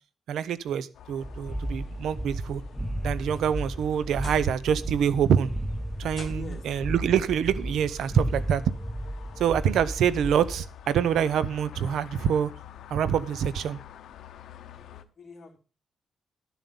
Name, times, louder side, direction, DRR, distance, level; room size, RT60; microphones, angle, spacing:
voice 1, 0.3-2.6 3.0-5.5 6.0-8.6 9.4-12.5 12.9-13.8, right 8 dB, 85° right, 0.8 m, -25 dB
sound 1, 0.9-15.0, left 10 dB, 85° left, 0.8 m, -49 dB
sound 2, 1.2-10.7, right 1 dB, ahead, 0.9 m, -34 dB
sound 3, 3.3-4.7 5.0-5.4 6.1-6.8 8.0-8.1 8.7-8.8 10.4-10.5, left 3 dB, 25° left, 2.0 m, -48 dB
voice 2, 6.3-6.9 14.7-15.6, left 4 dB, 40° left, 3.1 m, -46 dB
12.0 x 7.2 x 5.4 m
cardioid pair, 130°, 0 cm